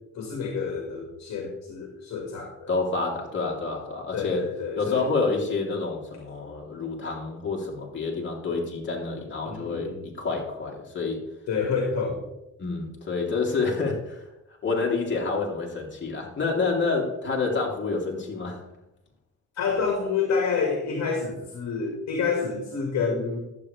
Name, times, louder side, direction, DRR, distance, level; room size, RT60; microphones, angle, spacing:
voice 1, 0.1-2.7 4.1-5.0 9.5-10.1 11.5-12.2 19.6-23.4, left 5 dB, 65° left, 1 dB, 2.0 m, -28 dB
voice 2, 2.7-4.4 4.7-11.2 12.6-14.2 14.6-18.6, left 4 dB, 40° left, -1 dB, 3.1 m, -28 dB
11.5 x 8.2 x 3.4 m, 0.90 s
cardioid pair, 90°, 30 cm